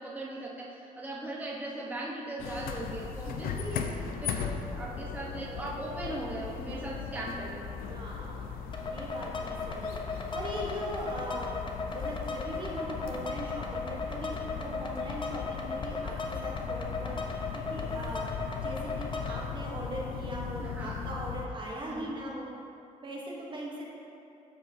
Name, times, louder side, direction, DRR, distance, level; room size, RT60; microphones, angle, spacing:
voice 1, 0.0-7.6 20.6-21.0 21.8-22.1, right 1 dB, 10° right, -4 dB, 1.0 m, -39 dB
sound 1, 2.4-21.5, left 6 dB, 90° left, 0.4 m, -38 dB
voice 2, 3.2-3.6 6.8-7.1 7.9-11.6 11.9-22.5 23.0-23.9, right 1 dB, 35° right, -3 dB, 1.0 m, -40 dB
sound 2, 4.9-8.5, right 3 dB, 75° right, 0.7 m, -50 dB
sound 3, 8.7-19.4, left 3 dB, 35° left, 0.7 m, -37 dB
12.0 x 4.5 x 2.7 m, 2.7 s
cardioid pair, 105°, 15 cm